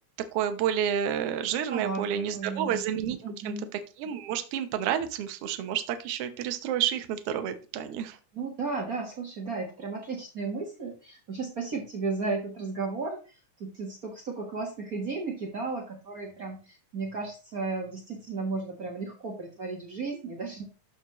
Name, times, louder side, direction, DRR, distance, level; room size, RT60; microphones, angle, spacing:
voice 1, 0.3-3.2 3.4-3.5 4.0-8.2, right 9 dB, 70° right, 9 dB, 1.5 m, -30 dB
voice 2, 1.7-2.8 3.2-3.7 8.3-20.6, right 4 dB, 45° right, -1 dB, 1.2 m, -34 dB
12.5 x 4.7 x 3.0 m, 0.33 s
omnidirectional pair, 3.6 m